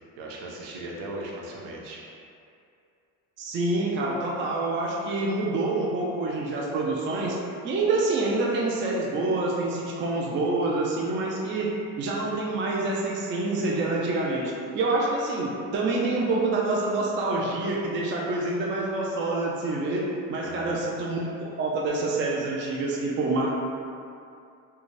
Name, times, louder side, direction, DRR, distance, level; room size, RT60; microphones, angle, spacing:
voice 1, 0.2-2.0 20.4-20.8, right 1 dB, 70° right, -3 dB, 0.7 m, -38 dB
voice 2, 3.4-7.4 7.6-11.7 12.0-23.5, right 2 dB, 30° right, -3 dB, 0.4 m, -27 dB
2.5 x 2.3 x 3.1 m, 2.5 s
supercardioid pair, 100°, 38 cm